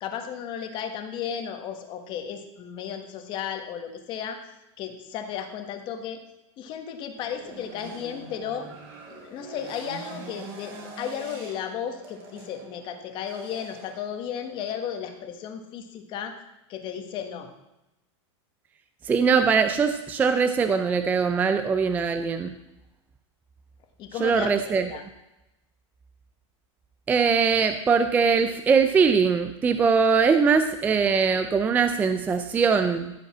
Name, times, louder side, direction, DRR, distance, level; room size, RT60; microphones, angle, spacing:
voice 1, 0.0-4.4 4.8-6.2 6.6-8.7 9.1-16.4 16.7-17.5 24.0-24.5 24.9-25.0, left 8 dB, 30° left, 6 dB, 1.5 m, -34 dB
sound 1, 7.2-15.2, right 2 dB, 35° right, 3.7 m, -44 dB
voice 2, 19.0-22.6 24.2-24.9 27.1-33.1, right 5 dB, 10° right, 9 dB, 0.4 m, -21 dB
15.0 x 5.3 x 7.3 m, 0.93 s
supercardioid pair, 160°, 15 cm